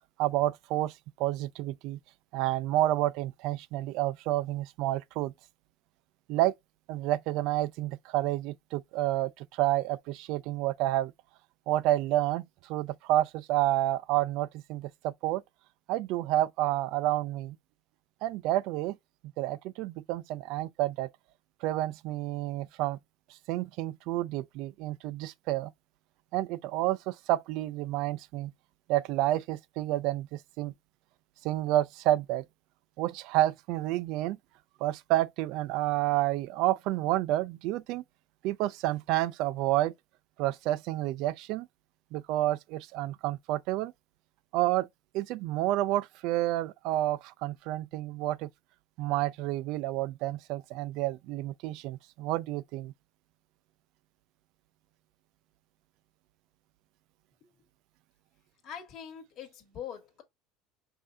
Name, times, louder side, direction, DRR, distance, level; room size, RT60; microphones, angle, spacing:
voice 1, 0.2-2.0 2.3-5.3 6.3-6.5 6.9-11.1 11.7-15.4 15.9-17.6 18.2-19.0 19.4-21.1 21.6-23.0 23.3-25.7 26.3-28.5 28.9-30.7 31.4-32.4 33.0-34.4 34.8-38.0 38.4-39.9 40.4-41.7 42.1-43.9 44.5-44.9 45.1-48.5 49.0-52.9, right 15 dB, 60° right, 0.4 m, -29 dB
voice 2, 58.6-60.2, left 8 dB, 40° left, 1.9 m, -43 dB
5.5 x 2.7 x 3.6 m
supercardioid pair, 135°, 0 cm